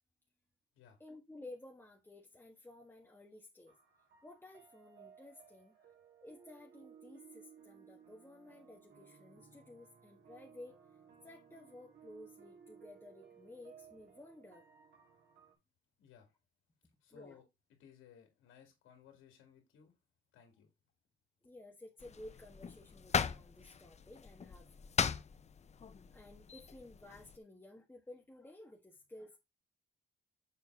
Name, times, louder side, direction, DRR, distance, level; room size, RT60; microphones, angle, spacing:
voice 1, 1.0-3.8 4.2-5.9 6.2-10.8 11.2-14.7 17.1-17.4 21.4-24.7 26.1-29.4, left 1 dB, 10° left, 1.5 m, -54 dB
sound 1, 3.7-15.5, right 7 dB, 60° right, 2.9 m, -60 dB
voice 2, 16.0-16.3 17.0-17.4 17.8-19.9 20.3-20.7, left 7 dB, 85° left, 2.2 m, -60 dB
sound 2, 22.0-27.4, left 6 dB, 35° left, 0.6 m, -39 dB
7.1 x 4.5 x 4.6 m
cardioid pair, 90°, 20 cm